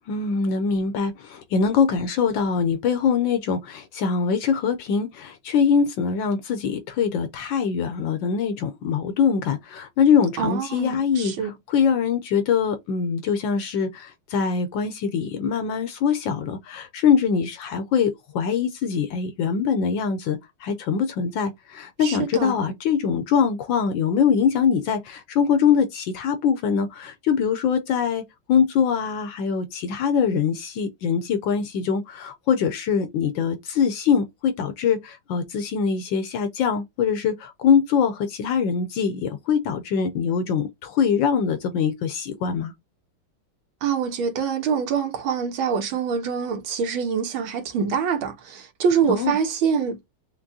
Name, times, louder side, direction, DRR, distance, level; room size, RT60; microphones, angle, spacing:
voice 1, 0.1-42.7 49.1-49.4, left 6 dB, 70° left, 1.3 m, -23 dB
voice 2, 10.4-11.5 22.0-22.5 43.8-50.0, right 6 dB, 70° right, 1.7 m, -25 dB
5.8 x 2.2 x 2.6 m
omnidirectional pair, 2.4 m